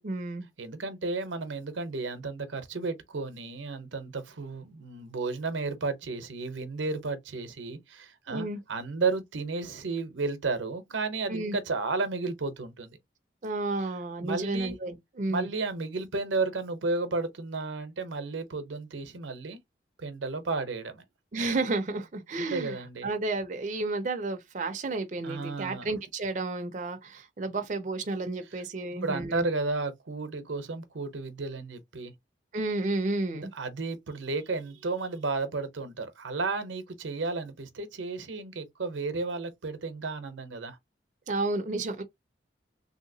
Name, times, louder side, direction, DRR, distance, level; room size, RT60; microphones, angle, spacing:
voice 1, 0.0-0.5 8.3-8.6 11.3-11.6 13.4-15.5 21.3-29.4 32.5-33.5 41.3-42.0, right 2 dB, 40° right, 0.5 m, -32 dB
voice 2, 0.6-13.0 14.2-14.8 15.3-19.6 20.0-21.0 22.4-23.1 25.2-25.9 29.0-32.1 33.3-40.8, right 3 dB, 90° right, 0.7 m, -33 dB
3.2 x 2.7 x 2.7 m
head